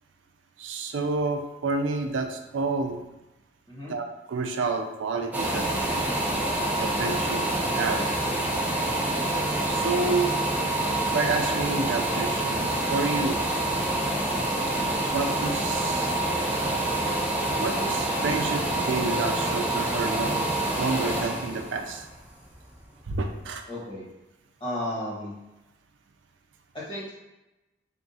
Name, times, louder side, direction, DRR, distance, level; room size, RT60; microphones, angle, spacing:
voice 1, 0.6-3.0 3.9-5.6 6.8-7.4 7.8-8.0 9.6-10.4 11.1-13.4 15.1-16.2 17.6-20.5 20.8-22.0 23.1-23.6, right 3 dB, 80° right, 5 dB, 0.4 m, -29 dB
sound 1, 5.3-23.0 23.5-23.6, right 1 dB, 10° right, 0.6 m, -27 dB
voice 2, 23.7-24.0 24.6-25.3 26.7-27.1, left 1 dB, 25° left, -7 dB, 1.4 m, -33 dB
3.7 x 2.4 x 4.0 m, 0.98 s
head